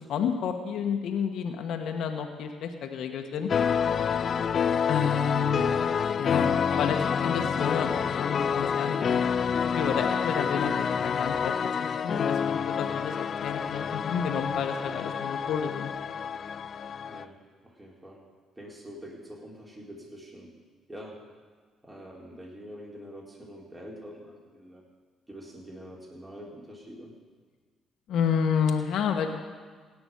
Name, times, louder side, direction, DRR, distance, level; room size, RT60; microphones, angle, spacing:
voice 1, 0.0-3.5 4.9-5.6 6.2-9.2 9.6-11.5 11.8-15.9 28.1-29.3, left 7 dB, 70° left, 4 dB, 1.2 m, -30 dB
sound 1, 3.5-17.2, left 7 dB, 50° left, 0.5 m, -28 dB
voice 2, 4.2-4.7 17.1-18.3 18.6-20.6 20.9-21.3 21.8-24.8 25.3-27.2, equal, 15° right, -3 dB, 4.0 m, -45 dB
17.0 x 6.0 x 9.2 m, 1.5 s
supercardioid pair, 65°, 0 cm